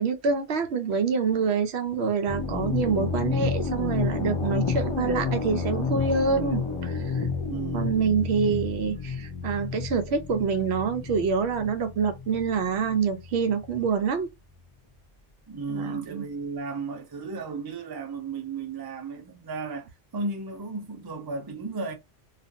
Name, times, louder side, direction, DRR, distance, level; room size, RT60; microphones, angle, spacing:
voice 1, 0.0-7.2 7.7-14.3 15.7-16.2, right 5 dB, 70° right, 0.8 m, -26 dB
sound 1, 2.3-13.8, left 5 dB, 40° left, 0.4 m, -30 dB
voice 2, 7.5-8.0 15.5-21.9, right 3 dB, 30° right, 0.4 m, -34 dB
2.4 x 2.4 x 2.6 m
omnidirectional pair, 1.2 m